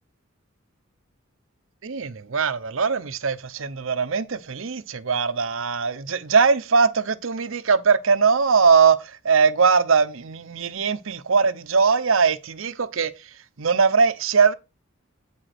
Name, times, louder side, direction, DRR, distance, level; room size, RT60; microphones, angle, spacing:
voice 1, 1.8-13.3 13.6-14.5, right 5 dB, 65° right, 0.7 m, -21 dB
8.6 x 5.0 x 4.3 m
head